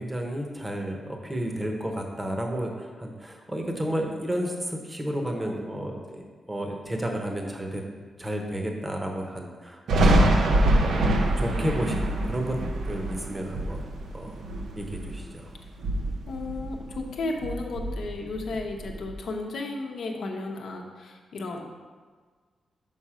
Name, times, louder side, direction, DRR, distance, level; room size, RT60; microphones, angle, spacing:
voice 1, 0.0-7.8 8.2-12.6 12.8-13.8 14.1-14.4 14.8-15.5, equal, 15° right, 2 dB, 0.9 m, -32 dB
Thunder, 9.9-15.3 15.7-17.1 17.4-19.1, right 1 dB, 85° right, 0.7 m, -25 dB
voice 2, 16.3-21.7, left 2 dB, 70° left, 1 dB, 0.9 m, -34 dB
5.8 x 5.4 x 5.0 m, 1.5 s
wide cardioid pair, 145°, 0 cm